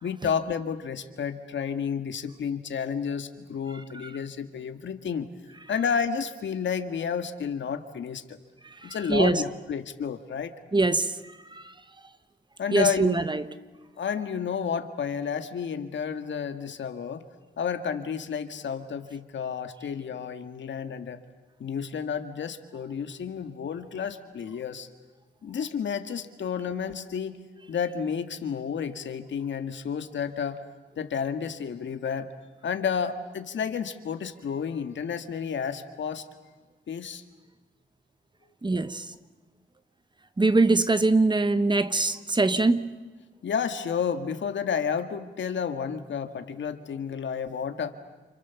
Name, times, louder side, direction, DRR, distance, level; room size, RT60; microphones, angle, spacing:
voice 1, 0.0-5.3 5.7-8.4 8.8-10.5 12.6-13.2 14.0-17.2 17.6-21.2 21.6-24.9 25.4-27.4 27.7-30.6 31.0-32.3 32.6-36.2 36.9-37.2 38.9-39.0 43.4-47.9, left 7 dB, 75° left, 1.7 m, -31 dB
voice 2, 8.8-9.4 10.7-11.1 11.5-11.7 12.7-13.4 38.6-39.1 40.4-43.0, right 3 dB, 25° right, 1.2 m, -23 dB
29.5 x 27.0 x 7.1 m
cardioid pair, 90°, 19 cm